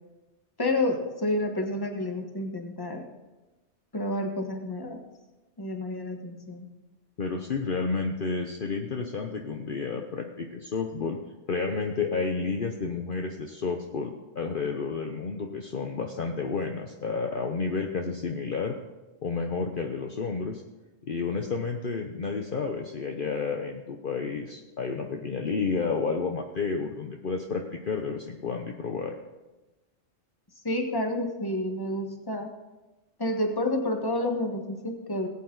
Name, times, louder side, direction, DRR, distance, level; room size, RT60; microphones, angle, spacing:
voice 1, 0.6-3.1 3.9-5.0 5.6-6.7 30.6-32.5 33.2-35.3, left 1 dB, 20° left, 3 dB, 1.4 m, -29 dB
voice 2, 7.2-11.2 11.5-18.8 19.2-20.6 21.0-29.1, left 4 dB, 50° left, 3 dB, 1.0 m, -31 dB
18.5 x 8.6 x 3.9 m, 1.1 s
omnidirectional pair, 1.2 m